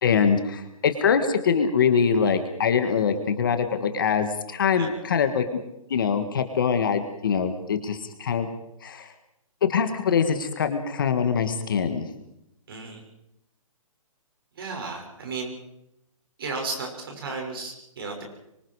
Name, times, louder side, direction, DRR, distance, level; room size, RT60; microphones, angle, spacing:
voice 1, 0.0-5.4 5.9-8.5 8.8-9.1 9.7-12.0, left 6 dB, 35° left, 7 dB, 1.7 m, -23 dB
voice 2, 12.7-13.0 14.6-15.5 16.4-18.2, right 4 dB, 40° right, 2 dB, 6.5 m, -34 dB
26.5 x 24.5 x 4.9 m, 0.84 s
hypercardioid pair, 180°, 18 cm